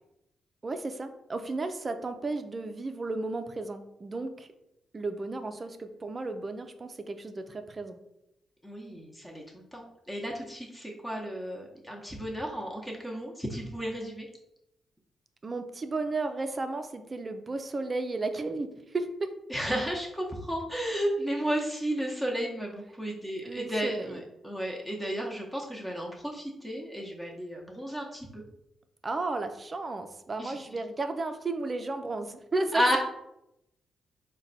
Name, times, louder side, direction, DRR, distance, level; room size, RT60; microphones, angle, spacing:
voice 1, 0.6-4.5 4.9-8.0 15.4-19.3 23.4-24.2 29.0-32.8, right 3 dB, 35° right, 8 dB, 0.5 m, -34 dB
voice 2, 8.6-14.3 19.5-28.4 30.4-30.8 32.7-33.0, equal, 10° left, -2 dB, 0.9 m, -33 dB
3.9 x 2.2 x 4.0 m, 0.84 s
supercardioid pair, 60°, 0 cm